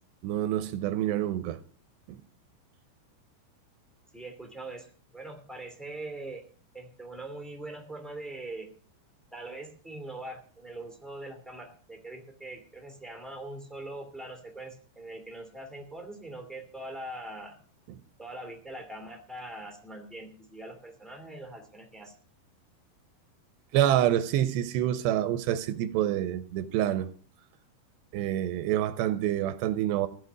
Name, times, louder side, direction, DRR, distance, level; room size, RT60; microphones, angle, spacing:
voice 1, 0.2-1.6 2.1-2.2 23.7-27.1 28.1-30.1, right 12 dB, 85° right, 2.9 m, -27 dB
voice 2, 4.1-6.4 6.7-8.7 9.3-17.6 18.2-22.1, right 2 dB, ahead, 1.3 m, -42 dB
15.5 x 5.5 x 9.5 m
omnidirectional pair, 4.9 m